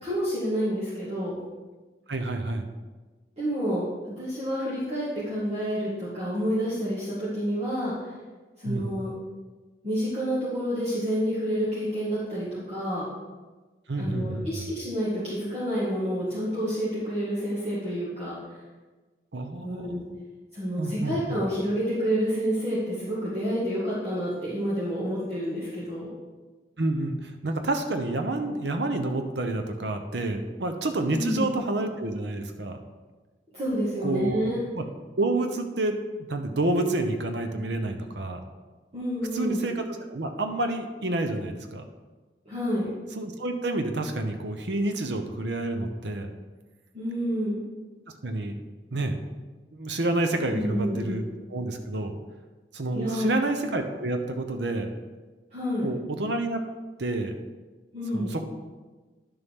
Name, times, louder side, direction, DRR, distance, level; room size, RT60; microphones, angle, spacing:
voice 1, 0.0-1.3 3.4-3.8 4.2-7.9 8.6-9.1 9.8-13.1 14.0-18.4 19.6-20.0 20.5-26.1 31.1-31.5 33.5-34.6 38.9-39.6 42.5-42.9 46.9-47.6 50.5-51.2 52.9-53.3 55.5-55.9 57.9-58.4, equal, 35° right, -9 dB, 1.9 m, -29 dB
voice 2, 2.1-2.7 8.6-8.9 13.9-14.5 19.3-20.0 20.8-21.4 26.8-32.8 34.0-34.8 35.2-36.0 36.3-38.4 39.3-41.8 43.2-46.3 48.2-48.6 48.9-49.2 49.7-51.2 51.5-52.2 52.7-54.9 55.8-56.6 57.0-57.4 58.1-58.4, right 2 dB, 85° right, 6 dB, 0.8 m, -29 dB
10.5 x 6.9 x 3.6 m, 1.3 s
head